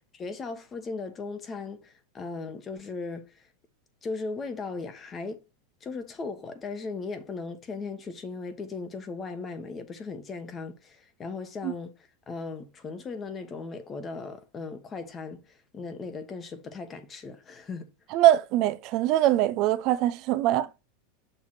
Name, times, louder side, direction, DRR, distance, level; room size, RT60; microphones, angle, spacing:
voice 1, 0.1-3.3 4.0-5.4 5.8-12.0 12.3-17.9, left 4 dB, 25° left, 1.2 m, -37 dB
voice 2, 18.1-20.7, right 13 dB, 50° right, 0.6 m, -22 dB
6.7 x 3.1 x 5.9 m
supercardioid pair, 120°, 0 cm